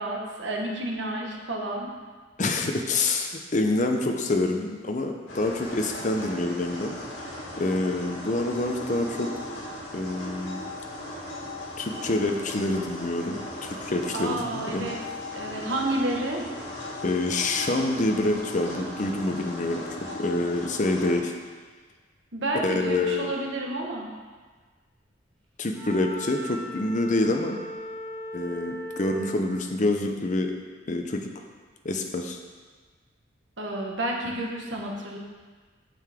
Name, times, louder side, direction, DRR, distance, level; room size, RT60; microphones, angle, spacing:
voice 1, 0.0-1.9 14.1-15.0 15.3-16.4 22.3-24.1 33.6-35.2, right 1 dB, 75° right, -1 dB, 1.3 m, -30 dB
voice 2, 2.4-7.0 7.6-9.3 9.9-10.7 11.8-14.9 17.0-19.8 20.1-21.3 22.5-23.3 25.6-27.6 28.3-30.5 30.9-31.3 31.8-32.4, left 2 dB, 40° left, 3 dB, 0.7 m, -27 dB
sound 1, 5.3-21.2, left 1 dB, 80° left, 2.2 m, -37 dB
Wind instrument woodwind instrument, 25.7-29.5, equal, 5° left, 1.7 m, -38 dB
9.1 x 6.7 x 3.6 m, 1.4 s
head